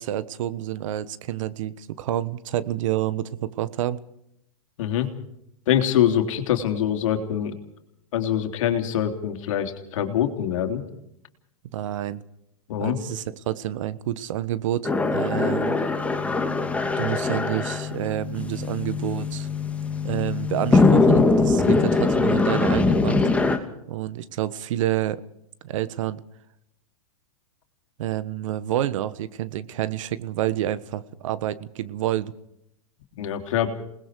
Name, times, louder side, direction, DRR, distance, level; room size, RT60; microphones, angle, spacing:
voice 1, 0.0-4.0 11.7-12.2 12.8-15.8 17.0-19.5 20.0-23.2 23.9-25.2 25.6-26.2 28.0-32.3, right 13 dB, 60° right, 16 dB, 1.3 m, -28 dB
voice 2, 5.7-7.5 8.1-10.8 12.7-13.0 21.6-21.7 33.2-33.7, left 10 dB, 60° left, 6 dB, 3.3 m, -24 dB
sound 1, 14.8-23.6, left 3 dB, 5° left, 2.5 m, -22 dB
28.5 x 20.0 x 4.8 m, 0.77 s
hypercardioid pair, 110°, 18 cm